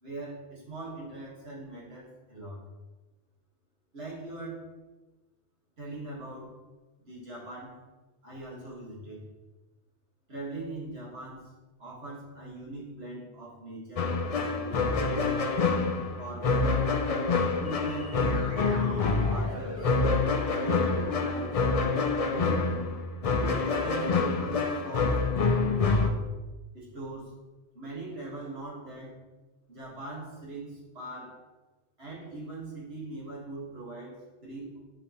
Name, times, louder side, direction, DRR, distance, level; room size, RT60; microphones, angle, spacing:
voice 1, 0.0-2.6 3.9-4.7 5.8-6.5 7.0-7.8 8.2-9.3 10.3-11.5 11.8-15.1 16.2-18.5 18.9-19.9 20.4-21.6 21.9-22.6 23.4-25.2 25.8-26.2 26.7-27.3 27.7-29.2 29.7-31.4 32.0-34.7, right 2 dB, 65° right, -5 dB, 1.9 m, -41 dB
sound 1, 14.0-26.1, left 4 dB, 45° left, 0.5 m, -27 dB
sound 2, 17.6-21.4, equal, 15° right, 1.3 m, -42 dB
7.2 x 5.0 x 2.9 m, 1.1 s
omnidirectional pair, 1.1 m